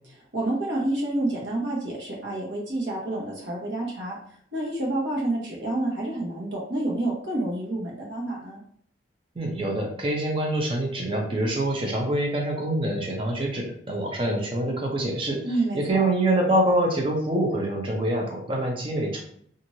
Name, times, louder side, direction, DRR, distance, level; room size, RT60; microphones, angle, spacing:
voice 1, 0.3-4.2 4.5-8.6 15.4-16.1, right 1 dB, 75° right, -3 dB, 1.1 m, -28 dB
voice 2, 9.3-15.4 15.7-19.2, right 1 dB, 30° right, 0 dB, 0.6 m, -25 dB
3.0 x 2.5 x 2.7 m, 0.63 s
head